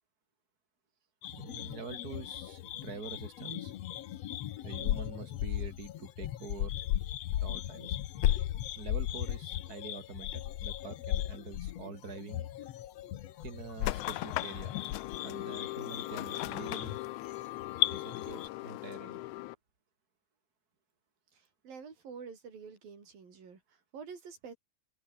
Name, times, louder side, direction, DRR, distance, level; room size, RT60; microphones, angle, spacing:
sound 1, 1.2-18.5, left 12 dB, 65° left, 1.7 m, -36 dB
voice 1, 1.3-3.7 4.1-4.2 4.6-6.7 7.4-8.0 8.8-12.5 13.4-14.8 15.2-17.0 17.9-19.2, right 4 dB, 25° right, 4.7 m, -45 dB
sound 2, 13.8-19.5, left 18 dB, 85° left, 1.7 m, -39 dB
voice 2, 21.3-24.6, right 6 dB, 80° right, 6.6 m, -48 dB
omnidirectional pair, 4.0 m